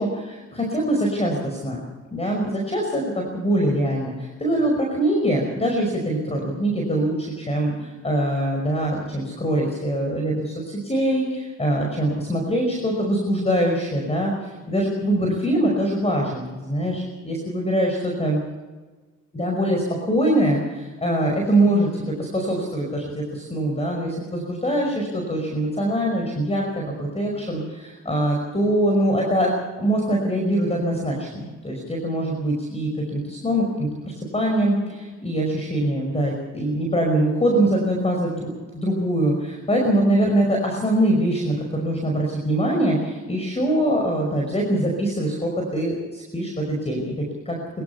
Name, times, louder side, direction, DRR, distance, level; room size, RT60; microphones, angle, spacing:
voice 1, 0.0-1.8 2.1-18.4 19.3-47.6, right 1 dB, 20° left, 0 dB, 5.4 m, -23 dB
24.5 x 15.5 x 7.0 m, 1.3 s
cardioid pair, 90°, 30 cm